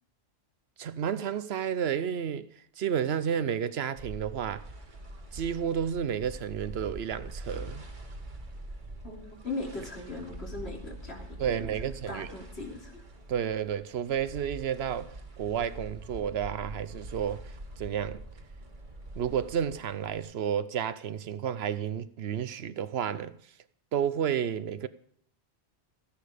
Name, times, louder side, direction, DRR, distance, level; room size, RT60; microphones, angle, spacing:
voice 1, 0.8-2.5 2.8-4.7 5.3-7.8 11.4-12.3 13.3-18.2 19.2-23.4 23.9-24.9, right 8 dB, 70° right, 0.9 m, -31 dB
sound 1, 4.0-20.2, right 1 dB, 45° right, 1.6 m, -44 dB
voice 2, 9.0-11.6 12.1-13.0, left 3 dB, 70° left, 3.4 m, -39 dB
15.0 x 10.5 x 5.0 m
omnidirectional pair, 1.1 m